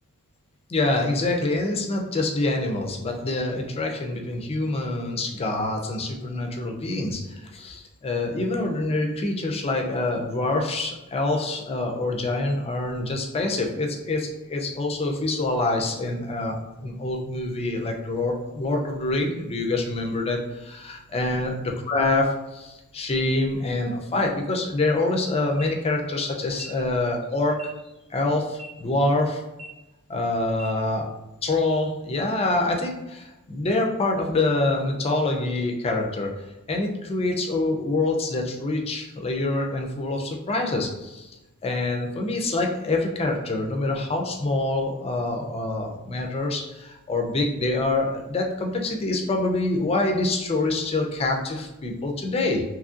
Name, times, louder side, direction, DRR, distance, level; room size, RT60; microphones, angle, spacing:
voice 1, 0.7-27.6 28.1-29.4 30.1-31.1 31.4-36.3 36.7-41.3 41.6-52.6, left 2 dB, 25° left, 2 dB, 0.4 m, -26 dB
sound 1, 25.6-25.7 26.5-26.7 27.5-27.7 28.5-28.7 29.5-29.7 30.5-30.7, left 1 dB, 70° right, 0.5 m, -42 dB
2.9 x 2.6 x 2.4 m, 1.0 s
head